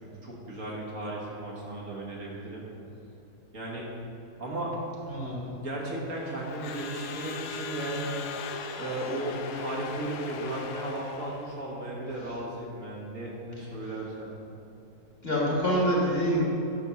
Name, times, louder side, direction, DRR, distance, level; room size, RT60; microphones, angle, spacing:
voice 1, 0.0-2.6 3.5-3.8 4.4-4.7 5.6-8.1 8.7-14.3, right 1 dB, 55° right, -4 dB, 1.7 m, -35 dB
voice 2, 5.1-5.4 15.2-16.4, equal, 40° left, -5 dB, 2.0 m, -26 dB
Crowd / Alarm, 6.1-11.6, left 5 dB, 85° left, 1.2 m, -39 dB
10.0 x 3.5 x 6.9 m, 2.9 s
omnidirectional pair, 1.7 m